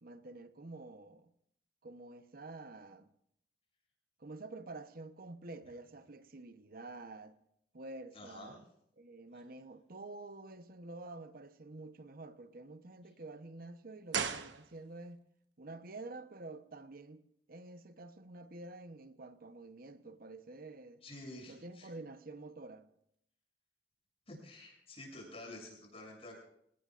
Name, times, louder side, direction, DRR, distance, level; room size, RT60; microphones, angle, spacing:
voice 1, 0.0-1.3 1.8-3.1 4.2-7.4 7.7-8.6 9.0-15.3 15.6-21.0 21.5-22.9, right 2 dB, 55° right, 1.0 m, -49 dB
voice 2, 8.1-8.6 9.3-9.4 21.0-21.9 24.3-26.4, left 1 dB, 35° left, 7.7 m, -50 dB
sound 1, 14.1-15.2 15.4-15.5, right 6 dB, 85° right, 1.2 m, -38 dB
28.0 x 19.0 x 2.6 m
head